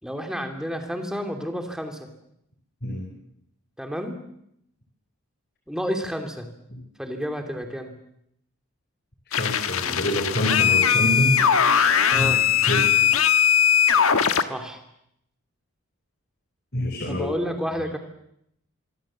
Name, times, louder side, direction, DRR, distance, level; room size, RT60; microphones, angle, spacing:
voice 1, 0.0-2.1 3.8-4.2 5.7-6.5 7.0-7.9 12.1-12.4 14.5-14.8 17.1-18.0, equal, 5° right, 4 dB, 2.8 m, -30 dB
sound 1, 9.3-14.4, left 8 dB, 80° left, 1.3 m, -20 dB
voice 2, 9.3-11.4 12.1-12.9 16.7-17.3, left 1 dB, 45° left, 3 dB, 4.4 m, -26 dB
24.5 x 24.5 x 7.5 m, 0.76 s
head